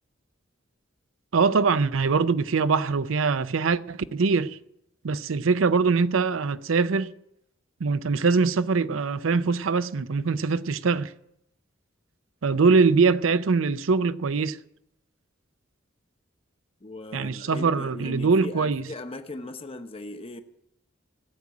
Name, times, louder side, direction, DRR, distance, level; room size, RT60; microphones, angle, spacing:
voice 1, 1.3-4.6 5.0-7.1 7.8-11.1 12.4-14.6 17.1-18.8, right 4 dB, 85° right, 0.6 m, -23 dB
voice 2, 16.8-20.4, left 2 dB, 30° left, 0.8 m, -38 dB
15.5 x 7.3 x 9.7 m
head